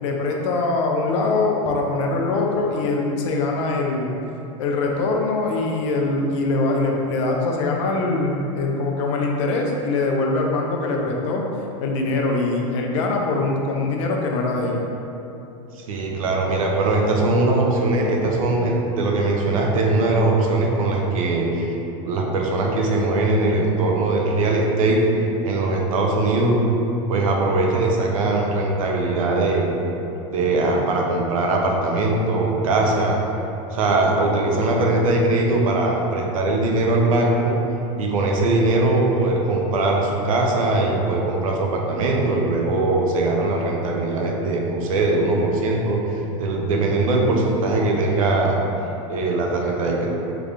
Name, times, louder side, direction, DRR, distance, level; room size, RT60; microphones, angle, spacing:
voice 1, 0.0-4.1 4.6-11.5 11.8-14.8, left 3 dB, 65° left, 1 dB, 0.6 m, -23 dB
voice 2, 15.8-21.7 22.1-25.0 25.4-26.6 27.1-29.7 30.3-33.2 33.7-37.6 38.0-48.6 49.1-50.1, right 2 dB, 85° right, 0 dB, 0.6 m, -21 dB
3.5 x 3.3 x 2.5 m, 2.9 s
hypercardioid pair, 110°, 17 cm